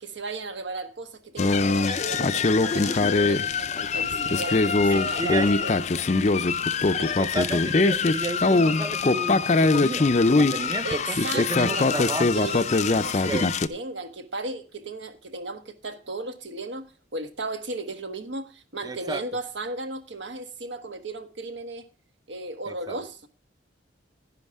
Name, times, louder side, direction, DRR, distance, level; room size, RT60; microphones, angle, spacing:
voice 1, 0.0-5.7 7.0-7.2 10.8-16.9 17.1-21.8 22.3-23.3, right 2 dB, 70° right, 1.3 m, -35 dB
sound 1, 1.4-13.7, left 3 dB, 35° left, 0.5 m, -22 dB
voice 2, 4.9-5.5 7.2-12.3 13.3-13.5 18.8-19.2 22.7-23.0, right 2 dB, 20° right, 0.6 m, -32 dB
11.0 x 10.5 x 3.5 m
head